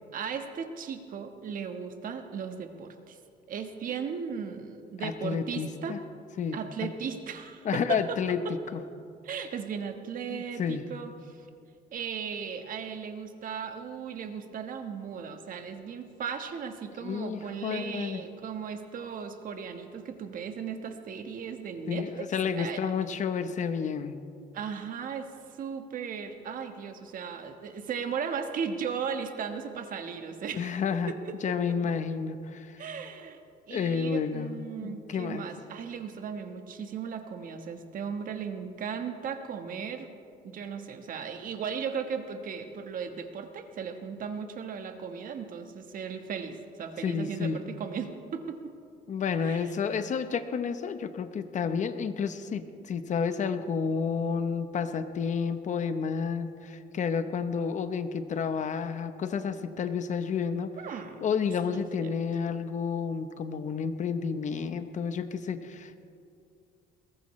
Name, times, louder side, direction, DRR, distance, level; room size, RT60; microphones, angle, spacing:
voice 1, 0.1-3.2 3.5-6.0 6.5-8.2 8.4-8.6 9.2-11.5 11.9-22.3 22.6-22.8 24.5-30.7 31.1-31.8 32.8-33.4 33.7-40.1 40.4-48.7 49.4-49.7 60.8-61.2 61.7-62.1, right 6 dB, 55° right, 6 dB, 1.4 m, -37 dB
voice 2, 5.0-6.0 6.4-6.9 7.6-8.4 8.7-8.8 10.3-10.8 17.0-18.2 21.9-24.2 30.5-31.1 31.4-32.8 33.7-34.5 34.8-35.4 47.0-47.6 49.1-60.7 61.2-66.0, left 6 dB, 45° left, 10 dB, 0.9 m, -30 dB
21.5 x 18.5 x 3.2 m, 2.4 s
cardioid pair, 110°, 17 cm